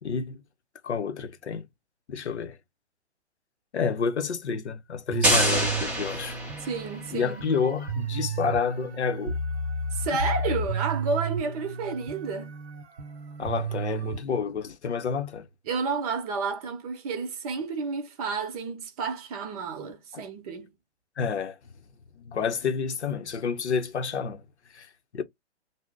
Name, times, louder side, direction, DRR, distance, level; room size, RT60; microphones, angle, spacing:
voice 1, 0.0-0.4 0.8-1.6 2.1-2.6 3.7-6.4 7.1-9.4 13.4-15.5 20.1-20.2 21.2-21.6 22.2-24.4 24.7-24.9 25.1-25.2, left 6 dB, 75° left, 0.8 m, -29 dB
sound 1, 5.1-14.2, right 3 dB, 65° right, 0.9 m, -32 dB
sound 2, 5.2-7.1, right 1 dB, 5° right, 0.6 m, -26 dB
voice 2, 6.6-7.4 9.9-12.5 15.7-20.7, right 4 dB, 35° right, 0.8 m, -31 dB
2.6 x 2.1 x 3.6 m
figure-of-eight pair, 125°, 34 cm